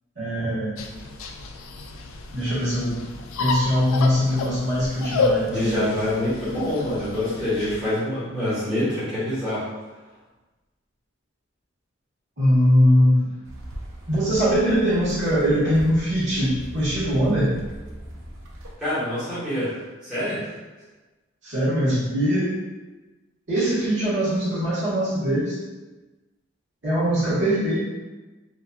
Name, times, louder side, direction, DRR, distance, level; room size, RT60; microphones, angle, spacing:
voice 1, 0.1-0.8 2.3-3.0 3.4-5.9 12.4-13.3 14.1-17.5 21.4-22.5 23.5-25.6 26.8-27.8, equal, 65° right, -11 dB, 1.4 m, -21 dB
sound 1, 0.8-7.9, left 3 dB, 85° left, 0.3 m, -30 dB
voice 2, 5.5-9.6 18.8-20.5, left 1 dB, 5° right, -14 dB, 1.2 m, -26 dB
sound 2, 13.4-18.8, right 1 dB, 85° right, 0.6 m, -39 dB
2.9 x 2.5 x 2.3 m, 1.2 s
head